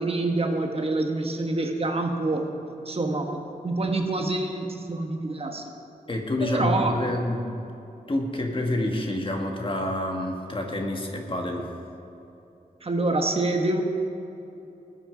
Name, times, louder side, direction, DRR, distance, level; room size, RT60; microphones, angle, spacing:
voice 1, 0.0-2.4 2.8-5.7 6.5-7.0 12.8-13.8, right 2 dB, 40° right, 3 dB, 1.3 m, -26 dB
voice 2, 6.1-7.4 8.1-11.7, left 1 dB, 35° left, 2 dB, 1.5 m, -28 dB
19.5 x 6.5 x 5.1 m, 2.9 s
wide cardioid pair, 110°, 15 cm